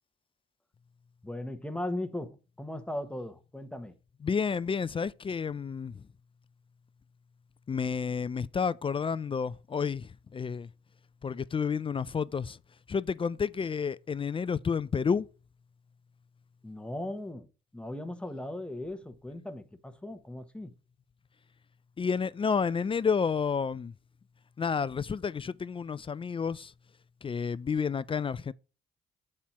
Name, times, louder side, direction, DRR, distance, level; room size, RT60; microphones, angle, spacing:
voice 1, 1.2-3.9 16.6-17.5 17.7-20.7, left 1 dB, 5° left, 1.0 m, -38 dB
voice 2, 4.2-5.9 7.7-10.7 11.2-12.6 12.9-15.3 22.0-23.9 24.6-26.7 27.2-28.5, left 6 dB, 25° left, 0.4 m, -30 dB
7.4 x 4.3 x 6.0 m
cardioid pair, 90°, 20 cm